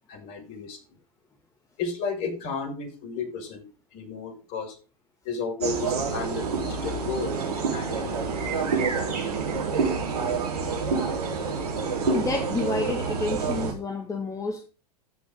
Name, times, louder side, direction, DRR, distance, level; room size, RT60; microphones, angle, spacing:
voice 1, 0.1-0.8 1.8-3.6 3.9-4.8 5.2-8.1, left 4 dB, 45° left, 3 dB, 5.9 m, -33 dB
sound 1, 5.6-13.7, right 4 dB, 70° right, 4.0 m, -27 dB
voice 2, 12.1-14.7, left 3 dB, 15° left, 3 dB, 2.0 m, -30 dB
15.0 x 6.1 x 3.7 m, 0.34 s
hypercardioid pair, 100°, 20 cm